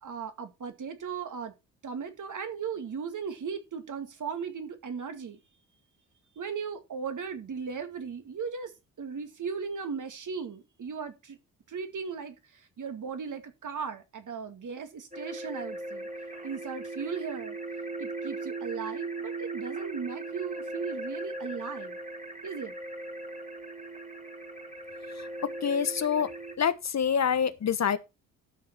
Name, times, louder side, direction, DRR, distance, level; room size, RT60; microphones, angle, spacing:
voice 1, 0.0-1.5 1.8-5.4 6.4-8.7 9.0-11.4 11.7-16.1 16.4-17.6 18.0-22.0 22.4-22.7, right 6 dB, 50° right, 2.3 m, -37 dB
sound 1, 15.1-26.6, right 2 dB, 20° right, 2.4 m, -38 dB
voice 2, 25.6-26.3 26.6-28.0, left 7 dB, 40° left, 1.2 m, -26 dB
12.5 x 6.1 x 4.6 m
hypercardioid pair, 45°, 40 cm